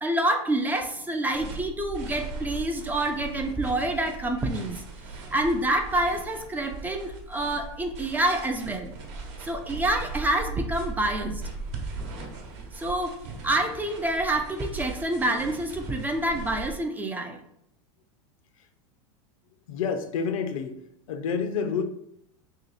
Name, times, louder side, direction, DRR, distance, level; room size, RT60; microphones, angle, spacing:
voice 1, 0.0-4.8 5.3-8.9 9.4-11.4 12.7-17.4, right 1 dB, 10° right, 4 dB, 0.4 m, -27 dB
sound 1, 1.3-16.7, right 3 dB, 60° right, 0.9 m, -39 dB
voice 2, 19.7-20.8 21.1-21.8, left 6 dB, 85° left, 6 dB, 0.6 m, -29 dB
3.1 x 2.9 x 4.0 m, 0.75 s
supercardioid pair, 135°, 17 cm